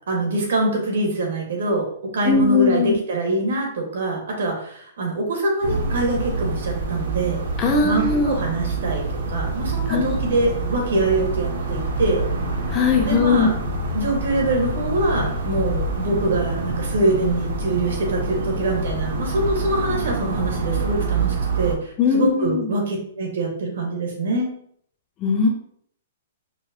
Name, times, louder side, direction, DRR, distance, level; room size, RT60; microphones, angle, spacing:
voice 1, 0.1-1.9 2.1-7.4 7.8-12.2 13.0-13.5 13.9-24.5, right 2 dB, 70° right, 0 dB, 1.3 m, -24 dB
voice 2, 2.2-2.9 7.6-8.4 9.9-10.1 12.7-13.5 22.0-22.7 25.2-25.5, left 5 dB, 15° left, 1 dB, 0.4 m, -19 dB
sound 1, 5.6-21.8, right 2 dB, 55° right, 0.6 m, -26 dB
4.7 x 2.2 x 2.7 m, 0.64 s
hypercardioid pair, 175°, 0 cm